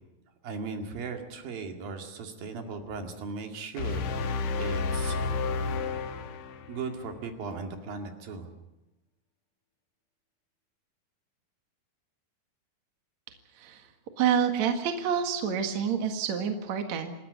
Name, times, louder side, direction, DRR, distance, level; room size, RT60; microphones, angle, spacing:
voice 1, 0.4-5.2 6.7-8.5, right 4 dB, 70° right, 5 dB, 3.9 m, -37 dB
sound 1, 3.8-7.0, left 4 dB, 60° left, 2.2 m, -31 dB
voice 2, 13.6-13.9 14.2-17.1, right 7 dB, 55° right, 5 dB, 2.8 m, -28 dB
27.5 x 13.5 x 9.4 m, 0.98 s
omnidirectional pair, 4.3 m